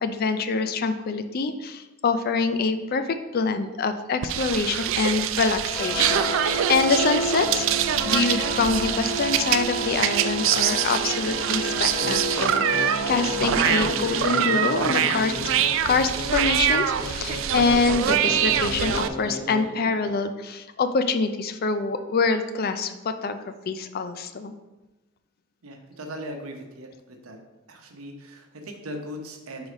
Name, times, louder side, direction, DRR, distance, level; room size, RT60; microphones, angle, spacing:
voice 1, 0.0-7.7 8.0-15.3 15.8-23.4 23.7-24.5, left 4 dB, 45° left, 10 dB, 0.4 m, -25 dB
sound 1, 4.2-19.1, right 9 dB, 60° right, 0.3 m, -25 dB
sound 2, 5.7-16.7, right 1 dB, 25° left, 2.1 m, -31 dB
sound 3, 11.9-20.2, left 2 dB, ahead, 0.8 m, -36 dB
voice 2, 25.6-27.4 27.7-29.7, equal, 80° right, 3 dB, 0.9 m, -39 dB
4.7 x 4.0 x 5.1 m, 1.1 s
head